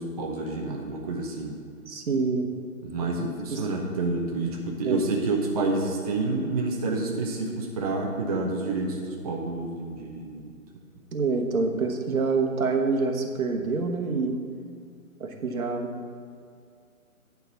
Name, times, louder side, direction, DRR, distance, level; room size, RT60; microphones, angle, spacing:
voice 1, 0.0-1.6 2.8-10.5, right 3 dB, 25° right, -1 dB, 0.7 m, -29 dB
voice 2, 1.9-2.5 3.2-3.6 4.8-5.0 11.1-14.4 15.2-15.9, right 4 dB, 70° right, 3 dB, 1.3 m, -27 dB
9.4 x 3.9 x 7.0 m, 2.3 s
figure-of-eight pair, 145°, 44 cm